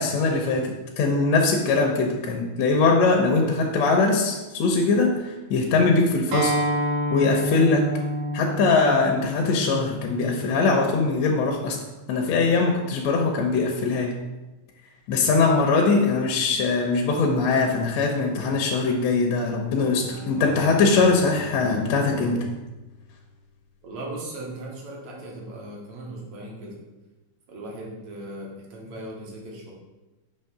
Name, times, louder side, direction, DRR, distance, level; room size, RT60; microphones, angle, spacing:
voice 1, 0.0-6.5 7.1-7.9 8.3-11.8 12.1-14.1 15.1-22.5, left 3 dB, 75° left, 1 dB, 1.8 m, -21 dB
Acoustic guitar, 6.3-11.5, equal, 85° right, 2.5 m, -29 dB
Bowed string instrument, 19.7-23.7, left 2 dB, 25° left, 0.8 m, -43 dB
voice 2, 23.8-26.8 27.5-29.7, right 1 dB, 70° right, -2 dB, 2.3 m, -38 dB
6.4 x 3.0 x 5.8 m, 1.1 s
omnidirectional pair, 3.3 m